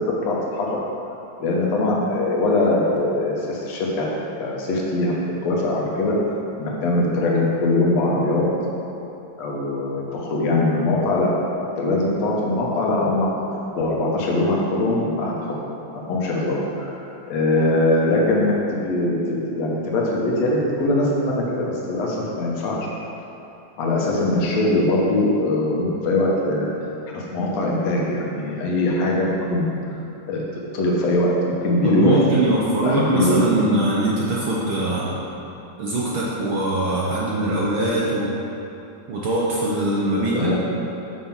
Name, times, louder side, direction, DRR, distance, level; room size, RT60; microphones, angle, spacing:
voice 1, 0.2-0.8 1.4-4.1 4.4-5.1 5.4-6.2 6.6-8.5 9.4-11.3 11.8-13.3 13.8-15.5 16.1-17.0 17.3-18.5 18.8-22.8 23.8-26.7 27.1-29.6 30.3-30.4 30.7-31.3 31.6-32.2 32.8-33.4 40.3-40.5, left 2 dB, 65° left, -3 dB, 2.3 m, -21 dB
voice 2, 31.8-35.2 35.8-38.4 39.1-40.5, right 1 dB, 70° right, -5 dB, 1.2 m, -22 dB
7.5 x 5.9 x 5.9 m, 3.0 s
omnidirectional pair, 3.4 m